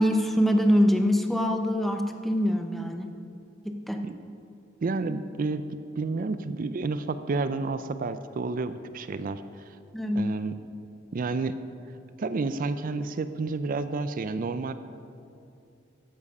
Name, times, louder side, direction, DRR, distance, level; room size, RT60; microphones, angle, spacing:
voice 1, 0.0-3.1 3.6-4.0 9.9-10.3, equal, ahead, 4 dB, 0.7 m, -24 dB
voice 2, 4.8-5.6 6.0-9.8 10.2-10.5 11.1-11.6 12.2-14.7, right 3 dB, 45° right, 11 dB, 0.4 m, -30 dB
13.5 x 7.4 x 5.4 m, 2.6 s
head